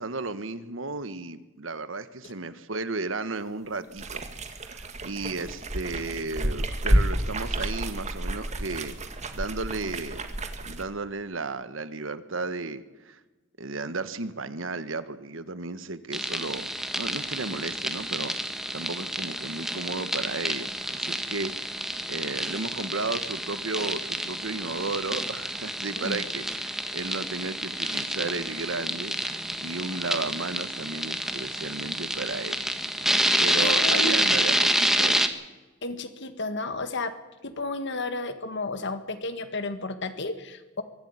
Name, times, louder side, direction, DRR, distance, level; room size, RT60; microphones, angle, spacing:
voice 1, 0.0-4.2 4.6-9.0 9.3-10.2 10.6-13.2 13.6-18.3 18.7-21.8 22.1-32.6 33.4-35.3, right 3 dB, 70° right, 13 dB, 1.4 m, -34 dB
sound 1, 3.9-10.8, right 1 dB, 35° right, 1.9 m, -30 dB
sound 2, 16.1-35.3, right 1 dB, ahead, 1.5 m, -28 dB
voice 2, 33.6-34.5 35.8-37.1 37.4-40.8, left 2 dB, 65° left, 9 dB, 1.7 m, -33 dB
23.5 x 12.5 x 9.8 m, 1.1 s
head